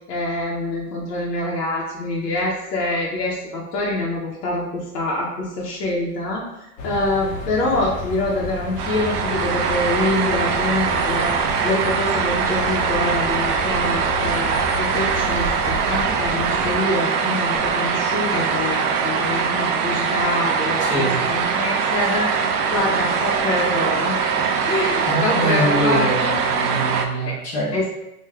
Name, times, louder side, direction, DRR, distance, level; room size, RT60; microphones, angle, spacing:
voice 1, 0.1-22.3 22.7-26.3 27.2-27.3 27.7-27.9, left 1 dB, 90° left, -4 dB, 0.9 m, -25 dB
sound 1, 6.8-16.8, left 2 dB, 60° left, 0.8 m, -33 dB
sound 2, 8.8-27.1, right 6 dB, 75° right, 0.6 m, -22 dB
voice 2, 20.8-21.2 25.1-27.7, equal, 20° left, -4 dB, 0.4 m, -24 dB
2.4 x 2.3 x 3.2 m, 0.90 s
supercardioid pair, 140°, 47 cm